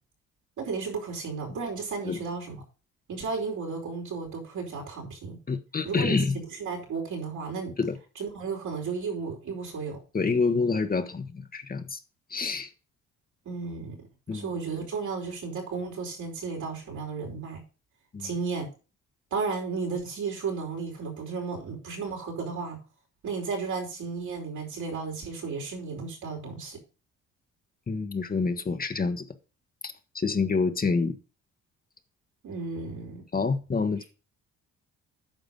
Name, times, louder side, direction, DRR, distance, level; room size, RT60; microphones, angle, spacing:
voice 1, 0.6-2.6 3.1-5.4 5.8-7.8 8.1-10.0 13.4-14.0 14.3-17.6 18.2-18.7 19.3-22.8 23.2-26.8 32.4-33.3, right 4 dB, 75° right, 4.8 m, -34 dB
voice 2, 5.5-6.4 7.8-8.0 10.1-12.0 12.3-12.7 14.3-14.4 18.1-18.3 27.9-29.2 29.8-31.2 33.3-34.0, left 4 dB, 30° left, 1.2 m, -27 dB
9.2 x 5.9 x 5.3 m
cardioid pair, 90°, 30 cm